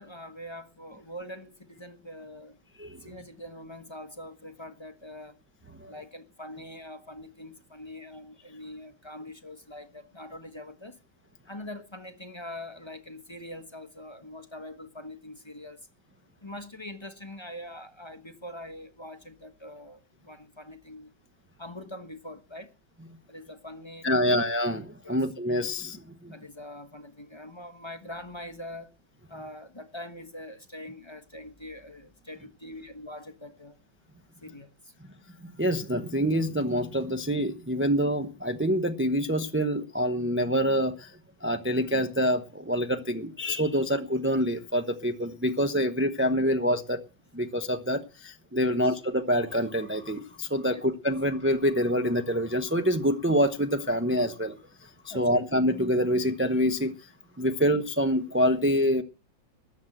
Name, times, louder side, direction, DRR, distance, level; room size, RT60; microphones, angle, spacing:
voice 1, 0.0-2.6 3.0-5.4 5.9-11.0 11.5-15.8 16.4-21.1 21.6-22.7 23.3-24.4 25.0-25.2 26.3-28.9 29.3-33.8 34.4-34.9 48.7-49.0 50.7-50.8 55.1-55.4, left 1 dB, 15° left, 1.0 m, -43 dB
voice 2, 24.0-26.3 35.4-41.1 41.4-47.0 47.3-56.9 57.4-59.0, equal, 15° right, 0.4 m, -26 dB
13.5 x 9.5 x 7.8 m
omnidirectional pair, 2.2 m